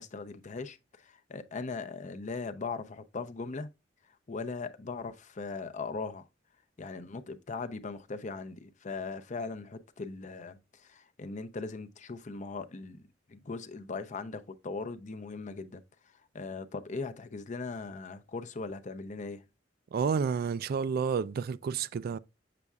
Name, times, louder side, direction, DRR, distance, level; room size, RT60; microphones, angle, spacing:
voice 1, 0.0-3.7 4.0-6.3 6.8-19.4, left 4 dB, 40° left, 0.6 m, -39 dB
voice 2, 19.9-22.2, right 6 dB, 50° right, 0.3 m, -30 dB
7.2 x 6.7 x 2.3 m
head